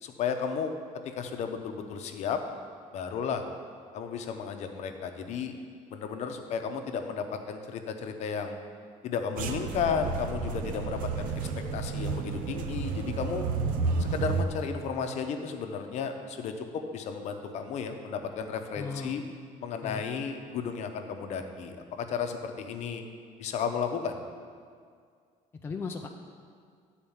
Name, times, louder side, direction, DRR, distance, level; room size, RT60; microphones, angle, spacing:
voice 1, 0.0-0.8 1.0-2.4 2.9-3.4 3.9-5.5 5.9-8.6 9.0-13.5 14.0-16.6 16.9-19.2 19.6-23.0 23.4-24.2, left 6 dB, 55° left, 6 dB, 0.8 m, -33 dB
sound 1, 9.4-14.4, right 4 dB, 85° right, 0.7 m, -31 dB
voice 2, 18.7-19.2 19.8-20.0 25.6-26.1, left 4 dB, 15° left, 3 dB, 0.4 m, -36 dB
10.5 x 4.4 x 7.2 m, 2.1 s
cardioid pair, 165°, 14 cm